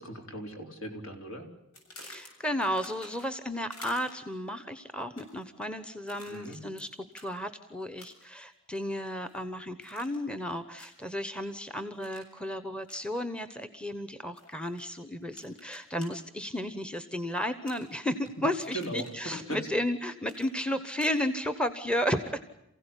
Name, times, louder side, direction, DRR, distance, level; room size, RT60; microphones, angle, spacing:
voice 1, 0.0-1.5 6.2-6.6 18.7-19.6, right 1 dB, 65° left, 4 dB, 4.0 m, -38 dB
sound 1, 1.7-3.4 3.7-4.3 5.0-5.5 6.1-6.8 7.1-7.3 8.0-8.4 8.8-9.4 9.8-10.3 10.8-11.1 12.0-12.3 12.8-13.0 14.4-14.8 15.3-16.1 17.6-18.3 18.6-19.2 20.2-21.2, left 1 dB, 85° left, 7.3 m, -50 dB
voice 2, 2.0-6.9 7.1-22.4, left 1 dB, 5° left, 10 dB, 1.0 m, -33 dB
28.5 x 16.0 x 10.0 m, 0.83 s
head